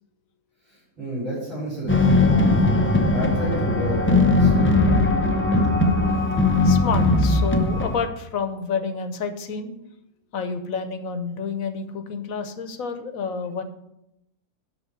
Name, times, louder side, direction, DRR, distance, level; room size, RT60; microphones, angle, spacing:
voice 1, 0.6-4.8, right 1 dB, 55° right, -10 dB, 5.0 m, -31 dB
sound 1, 1.9-8.1, left 2 dB, 15° left, 0.5 m, -19 dB
voice 2, 6.6-9.7 10.3-13.6, left 5 dB, 65° left, 9 dB, 1.3 m, -29 dB
11.5 x 3.9 x 7.0 m, 0.84 s
omnidirectional pair, 1.6 m